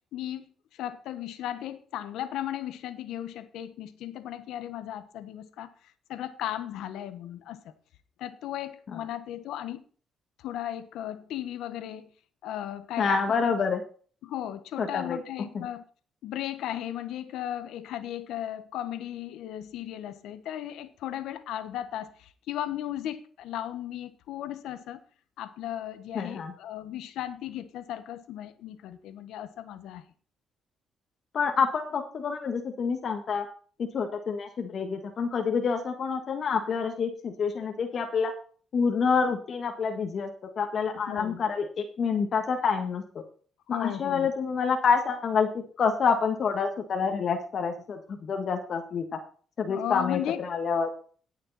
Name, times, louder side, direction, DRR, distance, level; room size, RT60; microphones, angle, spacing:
voice 1, 0.1-0.4 0.7-5.7 6.1-7.7 8.2-9.8 10.4-12.1 12.4-13.5 14.2-15.8 16.2-25.0 25.4-30.0 40.9-41.4 43.7-44.3 49.7-50.4, left 12 dB, 85° left, 1.3 m, -36 dB
voice 2, 13.0-13.8 14.8-15.2 26.1-26.5 31.3-33.4 33.9-38.3 38.7-40.3 40.6-43.0 43.7-45.5 45.8-49.2 49.6-50.9, left 5 dB, 55° left, 1.6 m, -27 dB
18.0 x 6.6 x 4.2 m
cardioid pair, 90°, 0 cm